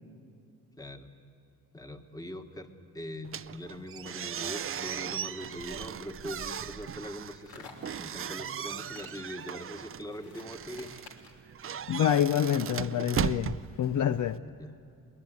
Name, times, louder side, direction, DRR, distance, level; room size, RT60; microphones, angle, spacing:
voice 1, 0.7-1.1 1.7-2.7 2.9-7.7 8.0-10.9 14.4-14.7, left 1 dB, 10° left, 1.4 m, -42 dB
sound 1, 3.2-14.4, right 8 dB, 35° right, 0.5 m, -37 dB
sound 2, 5.6-11.5, left 4 dB, 80° left, 3.1 m, -53 dB
voice 2, 11.9-14.4, left 9 dB, 55° left, 0.5 m, -27 dB
21.5 x 20.0 x 9.4 m
cardioid pair, 115°, 36 cm